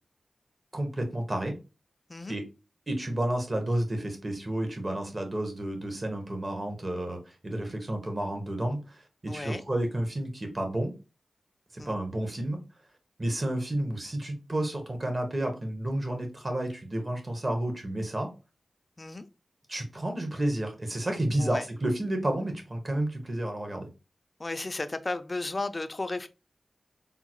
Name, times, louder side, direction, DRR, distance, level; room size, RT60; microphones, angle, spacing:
voice 1, 0.7-1.5 2.3-2.4 2.9-7.2 7.4-10.9 11.7-12.6 13.2-18.3 19.7-23.9, right 1 dB, 35° right, 1.0 m, -31 dB
voice 2, 9.3-9.6 11.8-11.9 19.0-19.3 21.4-21.6 24.4-26.3, left 2 dB, 30° left, 0.3 m, -34 dB
3.6 x 2.0 x 2.9 m
cardioid pair, 65°, 0 cm